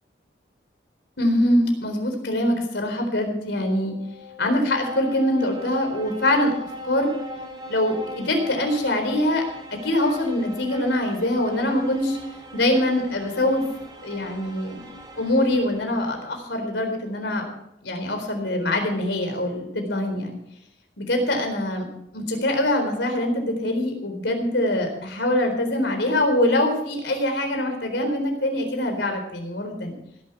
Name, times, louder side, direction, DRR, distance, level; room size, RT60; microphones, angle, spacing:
voice 1, 1.2-4.0 4.4-6.5 6.8-7.1 7.7-9.4 9.7-12.2 12.5-13.6 14.0-14.8 15.2-17.4 17.8-20.4 21.0-21.9 22.1-30.0, left 1 dB, 75° left, 4 dB, 4.0 m, -23 dB
sound 1, 3.6-16.4, equal, 25° right, 3.1 m, -40 dB
17.0 x 11.5 x 4.6 m, 0.79 s
head